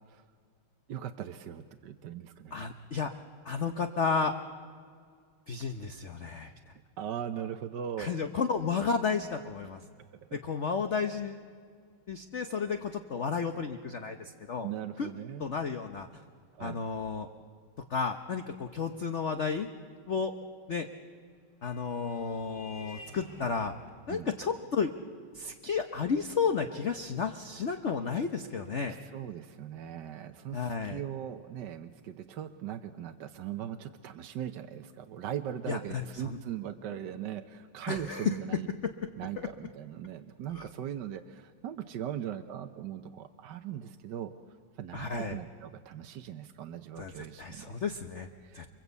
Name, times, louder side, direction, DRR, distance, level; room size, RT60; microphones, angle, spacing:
voice 1, 0.9-2.6 7.0-8.2 10.3-10.4 14.6-15.5 16.5-16.8 24.1-24.3 28.9-38.7 39.2-44.3 44.8-47.7 48.4-48.6, right 10 dB, 60° right, 7 dB, 1.3 m, -39 dB
voice 2, 2.5-3.1 3.4-4.3 5.5-6.5 8.0-9.8 10.3-11.4 12.1-14.7 15.0-15.1 15.4-16.1 16.6-17.3 17.9-19.7 20.1-20.3 20.7-20.9 21.6-23.7 24.1-24.9 25.3-28.9 30.5-31.0 35.7-36.4 37.9-38.4 38.8-38.9 40.5-40.6 44.9-45.4 47.0-48.3 48.5-48.7, left 5 dB, 50° left, 7 dB, 0.9 m, -32 dB
Vehicle horn car horn honking, 21.0-30.0, left 2 dB, 75° left, 4.2 m, -55 dB
29.0 x 23.0 x 8.2 m, 2.1 s
omnidirectional pair, 2.4 m